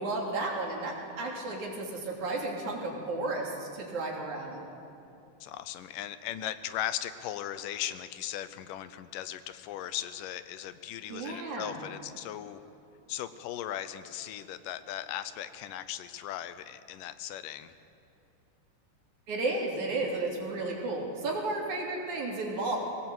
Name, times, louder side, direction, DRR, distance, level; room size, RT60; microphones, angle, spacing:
voice 1, 0.0-4.6 11.1-11.8 19.3-22.8, right 2 dB, 65° right, -1 dB, 4.3 m, -33 dB
voice 2, 5.4-12.6 13.1-17.7, left 11 dB, 85° left, 12 dB, 2.5 m, -38 dB
21.5 x 18.0 x 8.0 m, 2.9 s
omnidirectional pair, 3.7 m